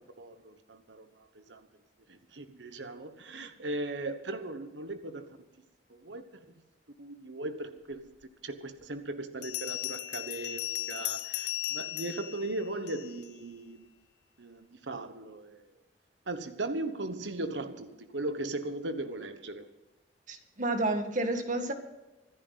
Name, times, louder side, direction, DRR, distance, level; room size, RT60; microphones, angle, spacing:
voice 1, 0.0-1.7 2.1-5.4 5.9-6.4 7.0-8.1 8.4-13.9 14.4-15.7 16.3-19.7, right 2 dB, 80° right, 1.2 m, -38 dB
Bell, 8.2-8.3 9.4-13.3, left 16 dB, 65° left, 0.6 m, -36 dB
voice 2, 20.3-21.7, right 2 dB, 45° right, 1.9 m, -30 dB
25.5 x 10.5 x 4.1 m
head